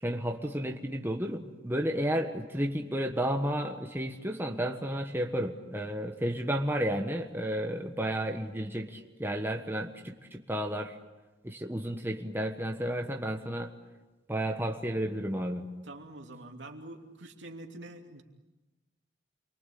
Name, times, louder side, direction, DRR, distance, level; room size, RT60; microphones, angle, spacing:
voice 1, 0.0-11.0 11.4-13.7 14.3-15.7, equal, 10° right, 3 dB, 1.4 m, -32 dB
voice 2, 15.8-18.2, right 2 dB, 75° right, 3 dB, 2.9 m, -45 dB
29.0 x 23.5 x 8.5 m, 1.1 s
head